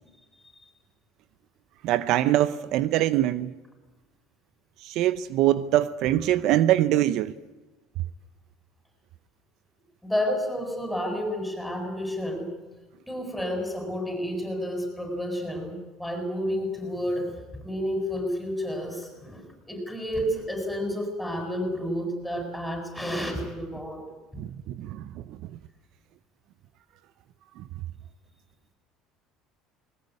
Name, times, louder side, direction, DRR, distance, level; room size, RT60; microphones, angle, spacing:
voice 1, 1.8-3.5 4.8-7.3 24.4-25.4 27.6-27.7, right 13 dB, 65° right, 0.7 m, -24 dB
voice 2, 10.0-12.5 13.1-17.4 17.6-24.0, equal, ahead, 7.7 m, -30 dB
20.5 x 20.0 x 9.7 m
cardioid pair, 120°, 0 cm